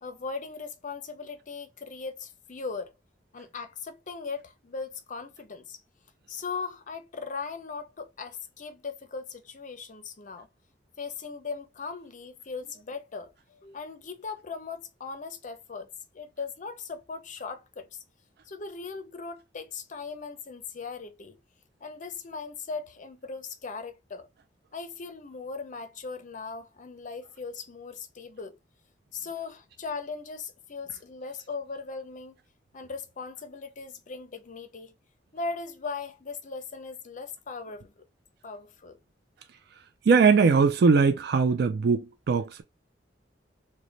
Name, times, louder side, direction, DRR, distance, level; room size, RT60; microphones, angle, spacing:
voice 1, 0.0-2.9 3.3-5.8 6.3-10.5 11.0-18.0 18.5-21.4 21.8-24.3 24.7-28.6 29.1-32.4 32.7-34.9 35.3-37.9 38.4-39.0, left 4 dB, 45° left, 0.6 m, -38 dB
voice 2, 40.1-42.6, right 5 dB, 60° right, 0.4 m, -21 dB
3.1 x 2.2 x 3.8 m
head